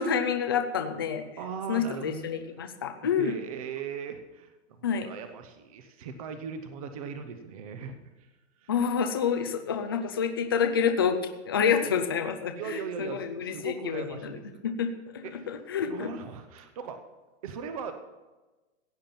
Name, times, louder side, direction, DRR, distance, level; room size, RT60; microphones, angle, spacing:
voice 1, 0.0-1.2 1.7-3.3 4.8-5.1 8.7-11.2 11.5-14.3 14.6-16.1, left 7 dB, 20° left, 6 dB, 0.4 m, -28 dB
voice 2, 1.4-2.3 3.2-8.3 8.6-8.7 12.5-14.6 15.2-15.5 15.8-17.0 17.4-17.9, right 6 dB, 30° right, 8 dB, 0.8 m, -39 dB
16.0 x 8.8 x 5.8 m, 1.1 s
hypercardioid pair, 175°, 37 cm